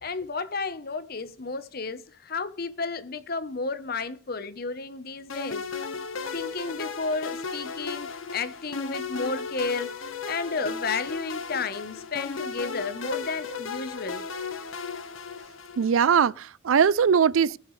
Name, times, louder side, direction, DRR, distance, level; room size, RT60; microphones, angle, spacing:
voice 1, 0.0-5.6 6.3-9.9 10.3-14.2, left 4 dB, 50° left, 0.9 m, -32 dB
sound 1, 5.3-16.0, left 5 dB, 80° left, 1.2 m, -35 dB
voice 2, 15.8-17.6, right 7 dB, 80° right, 0.4 m, -21 dB
19.0 x 7.3 x 3.1 m
head